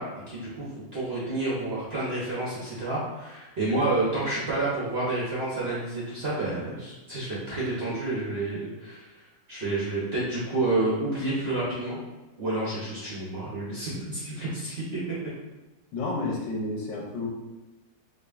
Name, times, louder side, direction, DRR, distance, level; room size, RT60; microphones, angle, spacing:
voice 1, 0.0-9.1 9.5-12.0 12.4-14.8, right 2 dB, 55° right, -7 dB, 0.7 m, -29 dB
voice 2, 15.9-17.3, left 2 dB, 90° left, -1 dB, 1.5 m, -30 dB
4.9 x 2.4 x 2.4 m, 1.1 s
omnidirectional pair, 1.9 m